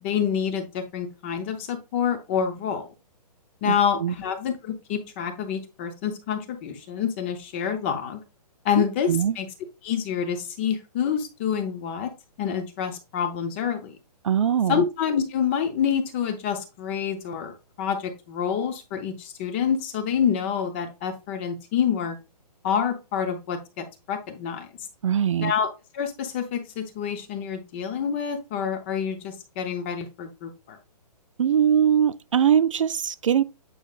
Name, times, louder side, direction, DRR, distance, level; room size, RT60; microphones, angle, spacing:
voice 1, 0.0-2.9 3.6-8.2 8.6-9.5 9.8-12.1 12.4-14.0 14.7-22.2 22.6-24.7 25.4-25.7 25.9-30.8, left 7 dB, 15° left, 0.6 m, -27 dB
voice 2, 3.6-4.1 9.1-9.4 14.2-14.8 25.0-25.5 31.4-33.4, right 9 dB, 50° right, 0.4 m, -21 dB
8.5 x 5.1 x 2.4 m
hypercardioid pair, 170°, 21 cm